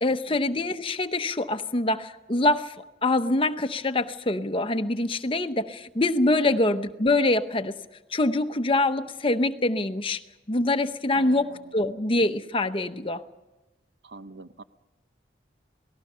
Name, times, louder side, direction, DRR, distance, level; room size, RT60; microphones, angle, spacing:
voice 1, 0.0-2.8 3.0-7.8 8.1-10.2 10.5-13.2, left 2 dB, 30° left, 9 dB, 0.8 m, -25 dB
voice 2, 11.1-11.7 14.0-14.6, right 3 dB, 75° right, 11 dB, 0.8 m, -44 dB
28.0 x 18.5 x 5.6 m, 1.1 s
head